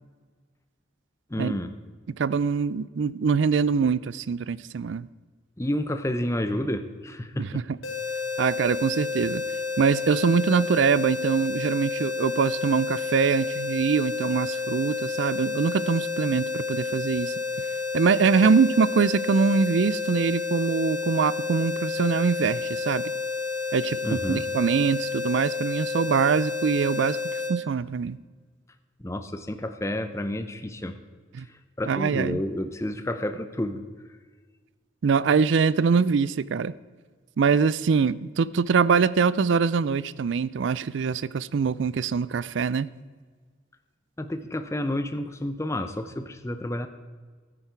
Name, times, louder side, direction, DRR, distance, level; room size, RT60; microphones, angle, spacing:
voice 1, 1.3-1.7 5.6-7.6 18.4-18.5 24.0-24.5 29.0-31.0 31.4-33.8 44.2-46.9, left 1 dB, 15° left, 8 dB, 0.6 m, -30 dB
voice 2, 2.2-5.1 7.4-7.5 8.4-9.4 9.8-17.3 17.9-23.0 23.7-27.2 27.5-28.2 31.3-31.5 31.9-32.4 35.0-36.7 37.4-42.9, right 5 dB, 65° right, 18 dB, 0.4 m, -23 dB
sound 1, 7.8-27.5, left 4 dB, 80° left, 1.9 m, -30 dB
13.0 x 10.0 x 4.6 m, 1.5 s
head